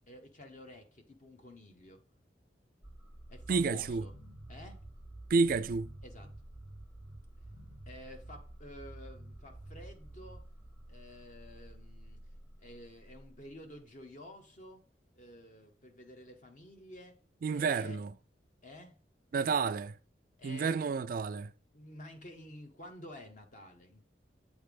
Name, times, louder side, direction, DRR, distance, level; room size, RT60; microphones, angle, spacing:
voice 1, 0.1-2.0 3.3-4.1 4.5-4.8 6.0-6.3 7.9-10.5 10.9-12.2 12.6-14.8 15.2-17.2 17.5-18.1 18.6-19.0 20.4-20.9 21.7-24.0, left 1 dB, 45° left, 0.8 m, -51 dB
sound 1, 2.8-13.7, right 1 dB, 85° left, 2.4 m, -50 dB
voice 2, 3.5-4.0 5.3-5.9 17.4-18.1 19.3-19.9 20.4-21.5, right 4 dB, 50° right, 0.3 m, -30 dB
8.2 x 3.3 x 5.1 m
head